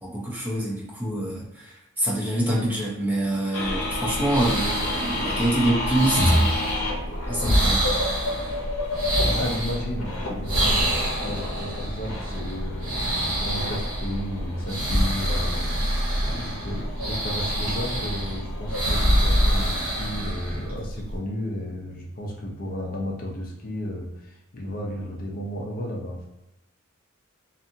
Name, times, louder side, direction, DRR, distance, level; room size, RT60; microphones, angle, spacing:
voice 1, 0.0-6.6 7.3-7.9, right 1 dB, 10° right, -4 dB, 0.5 m, -26 dB
sound 1, 3.5-19.8, left 2 dB, 80° left, 0.7 m, -33 dB
sound 2, 3.6-21.2, equal, 65° right, 1.2 m, -26 dB
voice 2, 9.3-26.2, left 1 dB, 40° left, -2 dB, 0.5 m, -33 dB
2.7 x 2.4 x 2.7 m, 0.93 s
head